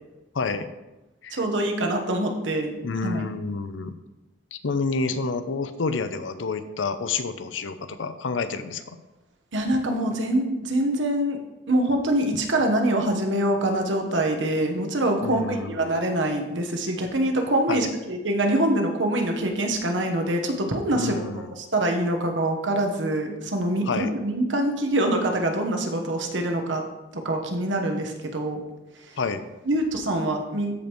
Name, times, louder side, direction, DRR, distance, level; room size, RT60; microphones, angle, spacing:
voice 1, 0.3-0.7 1.2-1.4 2.8-3.9 4.5-9.0 15.2-16.0 17.7-17.9 20.9-21.5 23.9-24.1 29.2-29.4, left 4 dB, 90° left, 11 dB, 0.6 m, -29 dB
voice 2, 1.3-3.2 9.5-11.4 11.7-26.8 27.1-28.6 29.7-30.7, right 1 dB, 80° right, 3 dB, 1.2 m, -25 dB
13.5 x 5.2 x 3.1 m, 1.0 s
head